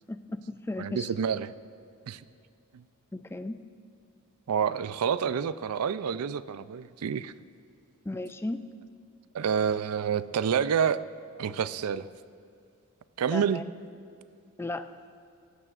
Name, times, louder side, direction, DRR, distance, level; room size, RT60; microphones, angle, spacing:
voice 1, 0.1-1.1 3.1-3.6 8.0-8.6 13.3-13.6 14.6-14.9, left 2 dB, 10° left, 10 dB, 0.3 m, -35 dB
voice 2, 0.8-1.5 2.1-2.2 2.7-2.8 4.5-7.3 9.3-11.0 11.4-12.1 13.2-13.6, right 7 dB, 85° right, 15 dB, 0.4 m, -28 dB
17.5 x 14.5 x 2.5 m, 2.5 s
head